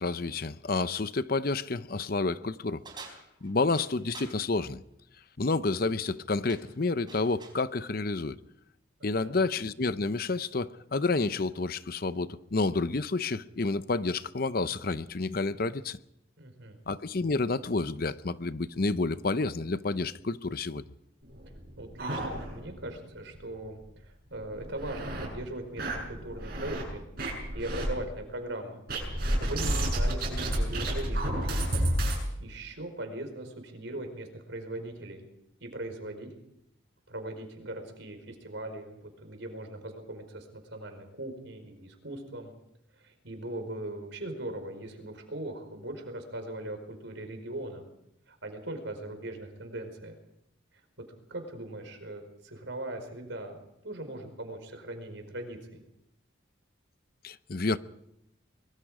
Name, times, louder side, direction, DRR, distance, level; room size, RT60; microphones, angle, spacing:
voice 1, 0.0-2.8 3.4-4.8 5.4-8.4 9.0-16.0 16.9-20.8 57.2-57.8, left 3 dB, 45° left, 0.7 m, -29 dB
sound 1, 2.8-4.4 5.9-6.2 6.5-7.6, right 4 dB, 20° right, 4.2 m, -48 dB
voice 2, 9.0-9.5 16.4-16.8 21.8-27.1 27.5-28.8 29.4-31.5 32.0-35.3 35.6-36.3 37.1-42.5 43.0-47.8 48.3-50.2 51.3-55.8, right 1 dB, 65° right, 4.8 m, -40 dB
sound 2, 21.3-22.8 23.2-23.3 23.6-23.7 24.3-25.3 25.8-26.8 27.2-27.9 28.9-32.2, right 1 dB, 50° right, 7.7 m, -31 dB
24.5 x 23.0 x 5.0 m
head